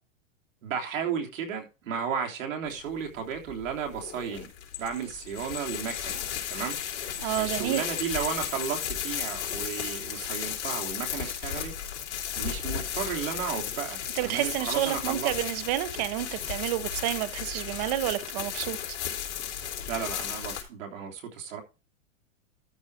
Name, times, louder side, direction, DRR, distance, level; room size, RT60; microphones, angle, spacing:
voice 1, 0.6-4.5 4.8-6.2 6.5-6.8 7.4-11.7 12.4-15.3 19.9-21.6, right 7 dB, 75° right, 3.5 m, -34 dB
sound 1, 2.7-20.6, left 9 dB, 60° left, 3.6 m, -35 dB
sound 2, 4.7-10.0, left 10 dB, 40° left, 2.9 m, -43 dB
voice 2, 7.2-7.8 14.1-18.8, right 14 dB, 30° right, 0.8 m, -29 dB
13.0 x 5.0 x 4.9 m
supercardioid pair, 165°, 39 cm